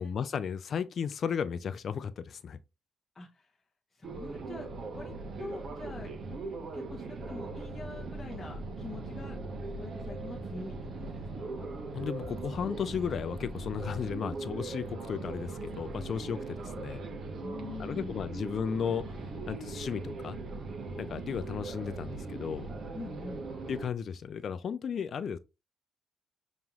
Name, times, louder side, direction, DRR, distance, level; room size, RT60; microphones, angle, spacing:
voice 1, 0.0-2.6 11.9-17.0 17.8-19.1 19.5-20.4 21.0-22.7 23.7-25.4, left 7 dB, 55° left, 0.4 m, -34 dB
voice 2, 3.1-3.5 3.9-6.1 6.7-9.4 9.7-11.7 17.4-18.3 22.9-23.5, left 3 dB, 25° left, 0.9 m, -45 dB
sound 1, 4.0-23.9, right 3 dB, 55° right, 0.9 m, -40 dB
5.4 x 3.0 x 2.4 m
cardioid pair, 90°, 0 cm